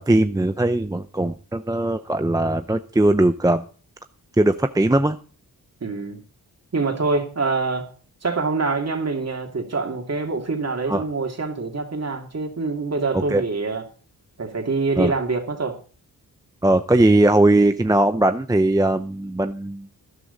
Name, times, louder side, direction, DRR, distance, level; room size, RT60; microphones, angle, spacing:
voice 1, 0.0-3.6 4.4-5.2 10.9-11.0 13.1-13.4 15.0-15.1 16.6-19.9, right 1 dB, 10° right, 0.6 m, -19 dB
voice 2, 5.8-6.2 6.7-7.9 8.2-13.8 14.4-15.8, right 3 dB, 45° right, 2.7 m, -25 dB
13.0 x 11.0 x 4.0 m
cardioid pair, 75°, 37 cm